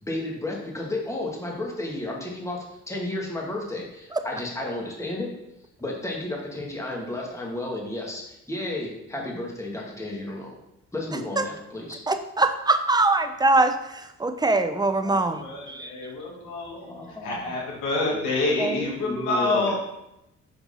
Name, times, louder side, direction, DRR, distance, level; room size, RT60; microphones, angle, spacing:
voice 1, 0.0-5.3 5.8-10.6 10.9-12.0 16.9-17.4 18.1-18.3 19.0-19.8, left 2 dB, 10° left, -2 dB, 1.8 m, -32 dB
voice 2, 12.1-15.9 18.6-18.9, right 2 dB, 15° right, 8 dB, 0.7 m, -23 dB
voice 3, 15.0-19.8, left 2 dB, 85° left, -3 dB, 1.9 m, -28 dB
5.5 x 4.5 x 5.4 m, 0.86 s
cardioid pair, 90°, 30 cm